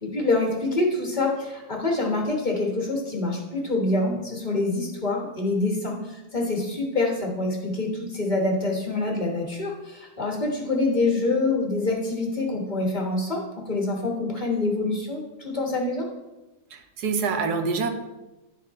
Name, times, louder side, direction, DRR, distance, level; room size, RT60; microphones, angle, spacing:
voice 1, 0.0-16.1, left 2 dB, 30° left, -2 dB, 1.3 m, -26 dB
voice 2, 16.7-17.9, right 4 dB, 85° right, 6 dB, 1.3 m, -26 dB
10.5 x 3.8 x 4.5 m, 1.1 s
omnidirectional pair, 1.7 m